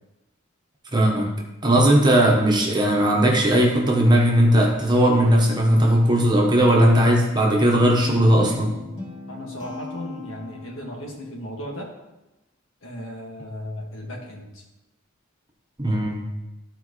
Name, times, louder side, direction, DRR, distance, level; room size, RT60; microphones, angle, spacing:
voice 1, 0.9-1.3 1.6-8.7 15.8-16.2, right 1 dB, 20° right, -1 dB, 1.2 m, -18 dB
Guitar, 7.7-11.0, left 4 dB, 25° left, 2.2 m, -36 dB
voice 2, 9.3-11.9 12.8-14.5, equal, 70° left, -1 dB, 1.9 m, -35 dB
13.0 x 4.5 x 3.2 m, 1.0 s
head